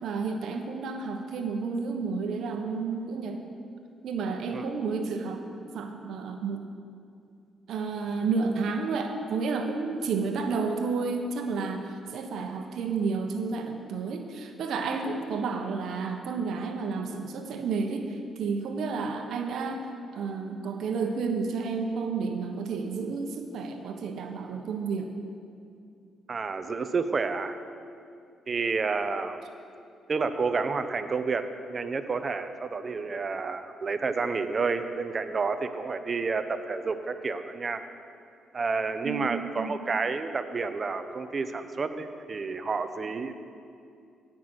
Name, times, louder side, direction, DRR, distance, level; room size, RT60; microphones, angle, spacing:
voice 1, 0.0-3.4 4.0-6.7 7.7-19.9 20.1-25.1 39.0-39.7, right 4 dB, 75° right, 4 dB, 1.2 m, -31 dB
voice 2, 26.3-27.6 28.5-29.4 30.1-37.8 38.5-43.4, right 4 dB, 40° right, 9 dB, 0.9 m, -30 dB
16.0 x 6.1 x 7.9 m, 2.4 s
cardioid pair, 90°, 0 cm